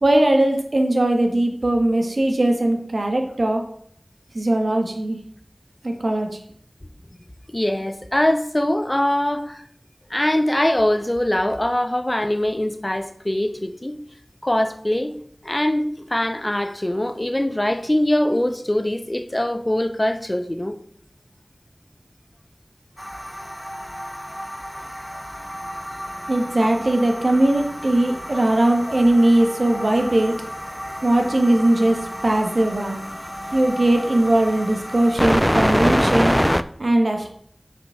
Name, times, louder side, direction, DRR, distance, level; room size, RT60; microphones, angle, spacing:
voice 1, 0.0-3.6 4.3-5.2 5.8-6.3 26.3-30.4 31.0-32.0 32.2-33.0 33.5-36.3 36.8-37.3, right 1 dB, 75° right, 1.4 m, -19 dB
voice 2, 7.5-9.6 10.1-14.0 14.4-15.1 15.4-20.7, left 1 dB, 30° left, 0.8 m, -22 dB
sound 1, 23.0-36.6, equal, 5° left, 0.4 m, -27 dB
6.0 x 5.3 x 5.7 m
wide cardioid pair, 45°, 0 cm